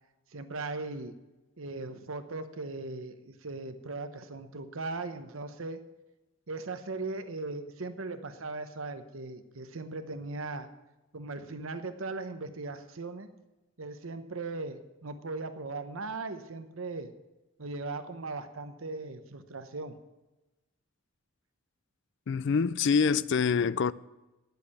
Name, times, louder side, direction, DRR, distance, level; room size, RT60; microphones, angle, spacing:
voice 1, 0.3-1.1 1.6-5.8 6.5-10.7 11.1-13.3 13.8-17.1 17.6-20.0, right 3 dB, 65° right, 0.9 m, -38 dB
voice 2, 22.3-23.9, left 5 dB, 55° left, 0.4 m, -25 dB
10.5 x 8.1 x 8.3 m
head